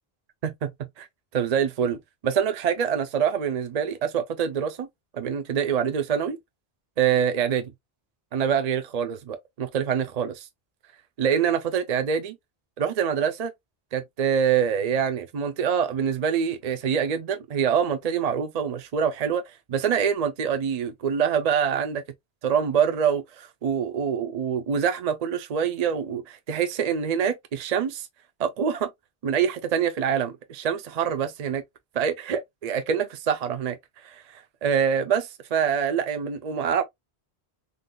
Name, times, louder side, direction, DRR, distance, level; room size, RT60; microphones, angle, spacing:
voice 1, 1.3-4.9 5.1-6.4 7.0-7.7 8.3-10.5 11.2-12.4 12.8-13.5 13.9-22.0 22.4-28.1 28.4-28.9 29.2-31.6 31.9-36.8, right 7 dB, 50° right, 0.5 m, -25 dB
3.7 x 2.5 x 2.2 m
omnidirectional pair, 1.1 m